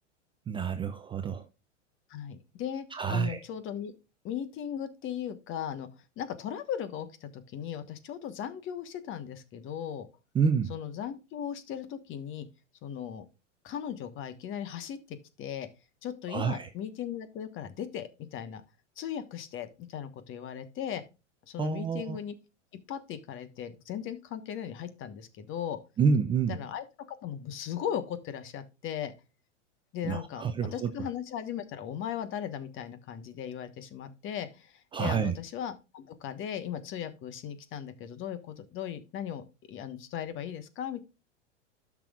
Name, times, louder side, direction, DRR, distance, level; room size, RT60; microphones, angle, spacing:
voice 1, 0.5-1.5 2.9-3.4 10.3-10.7 16.3-16.7 21.6-22.2 26.0-26.6 30.0-30.9 34.9-35.3, right 6 dB, 15° right, 0.4 m, -28 dB
voice 2, 2.1-3.9 4.2-10.1 10.7-12.5 12.8-13.2 13.6-15.7 16.0-18.6 19.0-21.0 21.5-22.3 22.9-25.8 26.5-26.8 27.2-29.1 29.9-41.0, left 9 dB, 35° left, 1.3 m, -37 dB
12.5 x 6.1 x 2.4 m
hypercardioid pair, 105°, 36 cm